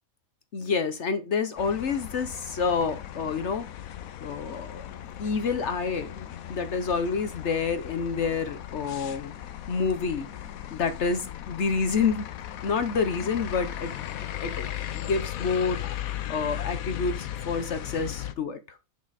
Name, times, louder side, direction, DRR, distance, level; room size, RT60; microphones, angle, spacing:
voice 1, 0.5-3.7 4.2-4.9 5.2-9.3 9.7-10.3 10.7-11.2 11.5-12.3 12.6-13.9 14.4-18.8, left 5 dB, 60° left, 10 dB, 1.1 m, -28 dB
sound 1, 1.6-18.3, left 11 dB, 85° left, 1.2 m, -37 dB
7.3 x 6.1 x 4.1 m, 0.27 s
omnidirectional pair, 1.4 m